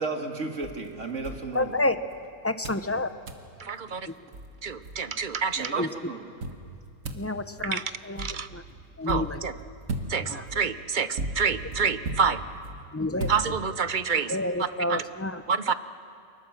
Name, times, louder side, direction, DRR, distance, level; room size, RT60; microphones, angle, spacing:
voice 1, 0.0-1.8 3.9-4.0 5.6-6.3, right 3 dB, 70° right, 3 dB, 2.4 m, -34 dB
sound 1, 0.6-2.2 2.6-2.9 3.3-3.5 4.0-4.1 4.3-5.4 6.4-14.0, right 2 dB, 90° right, 1.8 m, -37 dB
voice 2, 1.5-2.0 2.4-3.1 5.8-5.9 7.1-7.8 8.0-8.3 8.5-8.6 9.0-9.4 10.3-10.4 12.9-13.3 14.3-15.4 15.7-15.8, left 2 dB, 15° left, 10 dB, 0.6 m, -28 dB
voice 3, 3.6-4.1 4.6-5.9 7.6-7.8 8.2-8.5 9.1-9.5 10.1-12.4 13.3-15.0 15.5-15.7, right 6 dB, 45° right, 12 dB, 0.8 m, -28 dB
25.0 x 20.0 x 7.4 m, 2.3 s
omnidirectional pair, 1.3 m